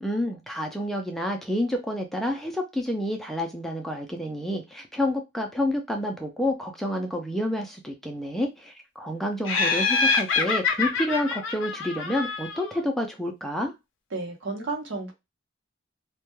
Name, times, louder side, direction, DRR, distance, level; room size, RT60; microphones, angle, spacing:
voice 1, 0.0-13.7, left 1 dB, ahead, 0.3 m, -29 dB
Laughter, 9.5-12.8, left 4 dB, 70° left, 0.4 m, -26 dB
voice 2, 14.1-15.1, right 3 dB, 70° right, 0.8 m, -32 dB
2.2 x 2.1 x 3.0 m
head